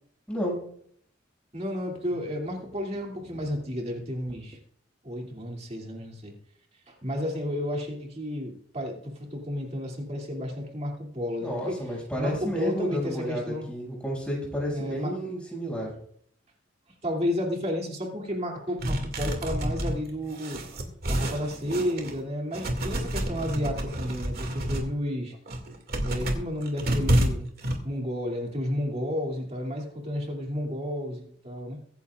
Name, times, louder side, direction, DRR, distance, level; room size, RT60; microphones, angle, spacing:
voice 1, 0.3-0.6 11.4-15.9, equal, 5° left, -4 dB, 6.2 m, -31 dB
voice 2, 1.5-4.6 5.0-6.3 6.9-11.8 12.2-13.7 14.7-15.1 17.0-20.6 21.1-25.3 26.0-27.5 27.8-31.8, left 1 dB, 35° right, 1 dB, 2.7 m, -32 dB
sound 1, 18.8-22.2 22.5-24.9 25.3-27.8, right 1 dB, 55° right, 2.2 m, -29 dB
23.5 x 10.5 x 2.4 m, 0.64 s
head